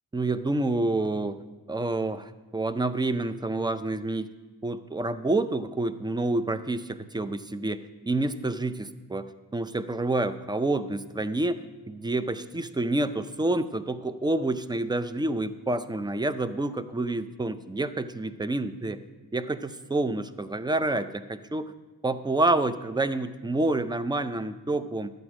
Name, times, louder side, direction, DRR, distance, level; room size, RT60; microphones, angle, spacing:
voice 1, 0.1-1.4 1.7-4.3 4.6-19.0 19.3-21.7 22.0-25.1, right 2 dB, 10° right, 12 dB, 0.4 m, -28 dB
11.5 x 7.9 x 4.9 m, 1.2 s
cardioid pair, 80°, 39 cm